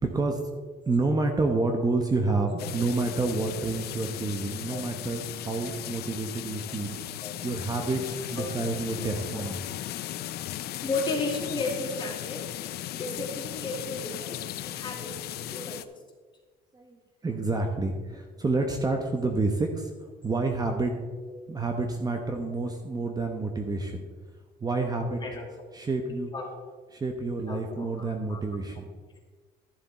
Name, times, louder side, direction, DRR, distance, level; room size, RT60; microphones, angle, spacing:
voice 1, 0.0-0.4 0.9-7.0 7.4-9.6 16.7-17.0 17.2-19.9 20.2-20.9 21.5-24.0 24.6-25.2 25.7-26.3 26.9-28.9, right 3 dB, 25° right, 4 dB, 1.0 m, -29 dB
sound 1, 2.6-15.8, left 13 dB, 70° left, 0.5 m, -37 dB
voice 2, 10.8-12.4 12.9-16.0 25.2-25.5 26.3-26.6 27.5-28.4, left 3 dB, 25° left, -1 dB, 2.6 m, -34 dB
12.5 x 7.2 x 4.2 m, 1.4 s
cardioid pair, 110°, 17 cm